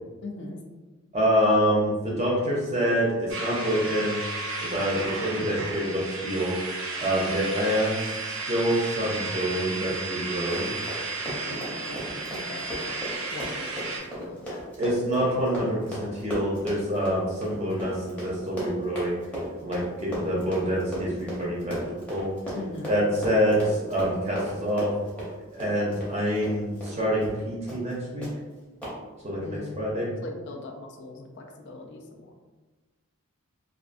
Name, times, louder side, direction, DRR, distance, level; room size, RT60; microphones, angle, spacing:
voice 1, 0.2-0.6 12.3-14.6 22.5-22.9 29.4-29.8 30.2-32.3, left 2 dB, 55° left, 2 dB, 0.3 m, -40 dB
voice 2, 1.1-4.2 4.6-6.6 7.0-10.7 14.8-19.2 19.6-21.8 22.1-22.3 22.9-24.9 25.5-28.3 29.2-29.4 29.8-30.1, equal, 30° right, -5 dB, 0.5 m, -26 dB
sound 1, 3.3-14.0, right 3 dB, 75° right, 0.7 m, -33 dB
Run, 10.3-27.0 27.2-27.4 27.7-27.9 28.2-28.3 28.8-28.9, equal, 5° left, 0.7 m, -36 dB
2.4 x 2.4 x 2.5 m, 1.2 s
head